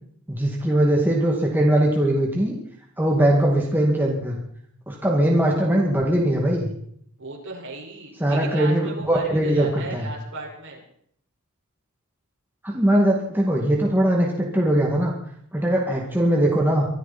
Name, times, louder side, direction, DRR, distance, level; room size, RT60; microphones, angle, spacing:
voice 1, 0.3-2.6 3.0-4.4 4.9-6.7 8.2-10.1 12.6-15.1 15.5-16.9, right 1 dB, 10° right, -2 dB, 2.4 m, -20 dB
voice 2, 7.2-10.8 15.6-15.7, right 2 dB, 55° right, -1 dB, 5.7 m, -36 dB
24.5 x 13.0 x 4.4 m, 0.65 s
head